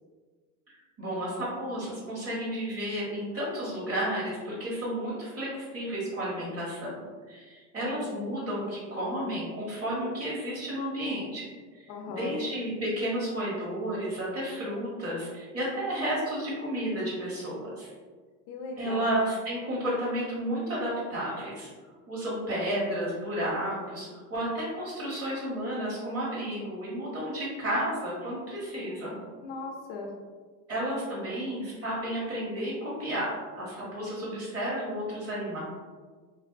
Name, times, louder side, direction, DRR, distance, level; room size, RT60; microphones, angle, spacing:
voice 1, 1.0-11.4 11.7-17.9 18.8-21.7 22.1-29.2 30.7-35.6, equal, 30° right, -6 dB, 1.2 m, -32 dB
voice 2, 11.9-12.5 18.5-19.2 29.4-30.1, left 3 dB, 60° left, 1 dB, 0.5 m, -38 dB
2.6 x 2.1 x 2.4 m, 1.5 s
supercardioid pair, 105°, 48 cm